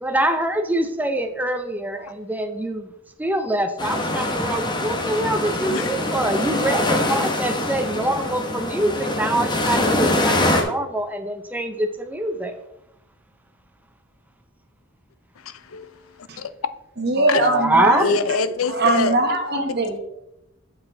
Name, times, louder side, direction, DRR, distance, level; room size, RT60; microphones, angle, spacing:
voice 1, 0.0-2.9 3.2-12.6 17.5-18.1, right 1 dB, 10° right, 0.5 m, -24 dB
sound 1, 3.8-10.6, left 1 dB, 20° left, 0.9 m, -23 dB
voice 2, 15.4-16.5 17.3-17.5 18.0-19.4, left 4 dB, 90° left, 0.5 m, -26 dB
voice 3, 17.0-18.1 18.7-20.0, right 2 dB, 55° right, 1.3 m, -21 dB
7.2 x 5.8 x 3.9 m
head